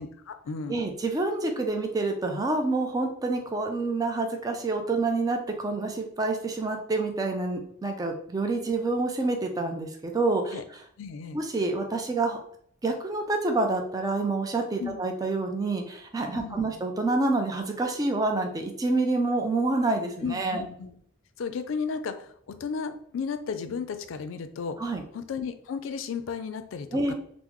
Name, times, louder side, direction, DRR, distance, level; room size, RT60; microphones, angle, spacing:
voice 1, 0.0-0.8 10.5-10.6 11.0-11.4 14.8-15.0 16.3-16.7 20.2-20.9 21.4-24.8 25.1-27.1, left 5 dB, 75° left, 10 dB, 0.4 m, -34 dB
voice 2, 0.7-10.6 11.3-12.4 12.8-20.6 24.8-25.0 26.9-27.1, right 3 dB, 20° right, 3 dB, 0.4 m, -27 dB
3.5 x 2.0 x 3.0 m, 0.64 s
head